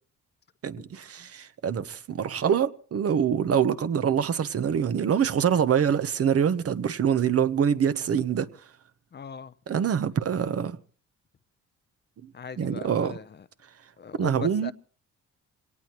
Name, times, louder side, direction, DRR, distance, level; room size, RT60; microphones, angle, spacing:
voice 1, 0.6-8.5 9.7-10.8 12.6-13.2 14.2-14.7, right 8 dB, 50° right, 1.1 m, -25 dB
voice 2, 9.1-9.5 12.3-13.2 14.0-14.7, left 6 dB, 35° left, 0.7 m, -39 dB
24.5 x 18.0 x 3.0 m
cardioid pair, 90°, 30 cm